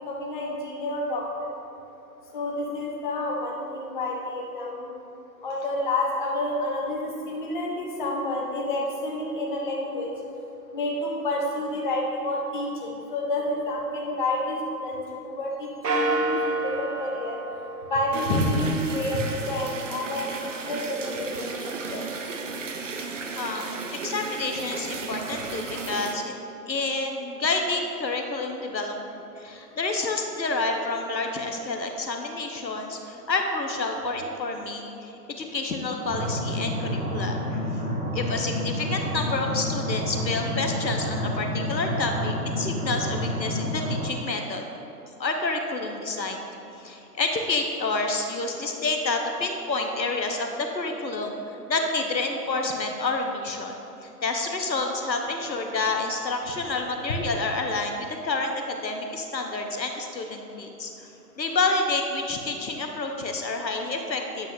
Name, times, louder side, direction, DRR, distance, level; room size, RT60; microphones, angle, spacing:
voice 1, 0.1-1.2 2.3-4.8 5.4-10.1 10.7-16.4 16.6-17.4 17.9-21.5 21.9-22.0 57.1-57.2, left 1 dB, 30° left, -1 dB, 0.8 m, -29 dB
sound 1, 15.8-18.5, right 2 dB, 70° right, 0.9 m, -28 dB
sound 2, 18.1-26.1, right 4 dB, 50° right, 0.5 m, -34 dB
voice 2, 23.0-23.7 24.0-26.3 26.7-37.6 38.1-44.6 45.2-46.5 46.8-61.1 61.4-64.5, left 3 dB, 85° left, 3 dB, 0.9 m, -29 dB
sound 3, 36.1-44.1, left 1 dB, 25° right, 1.0 m, -29 dB
8.3 x 5.4 x 2.7 m, 2.8 s
figure-of-eight pair, 130°, 50 cm